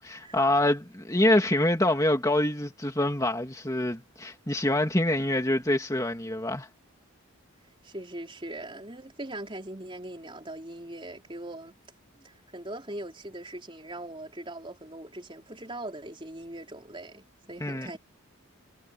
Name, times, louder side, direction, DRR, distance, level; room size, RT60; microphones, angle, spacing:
voice 1, 0.0-6.7 17.6-17.9, left 1 dB, 15° left, 2.5 m, -25 dB
voice 2, 7.8-11.7 12.2-18.0, right 1 dB, 25° right, 4.1 m, -40 dB
head